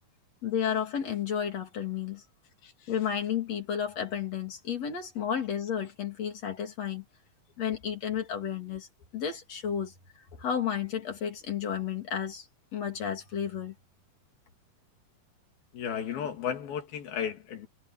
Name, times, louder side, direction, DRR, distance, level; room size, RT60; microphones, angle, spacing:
voice 1, 0.4-2.2 2.9-7.0 7.6-8.9 9.1-12.5 12.7-13.8, left 8 dB, 45° left, 3.8 m, -32 dB
voice 2, 15.7-17.7, left 8 dB, 80° left, 4.5 m, -34 dB
omnidirectional pair, 4.2 m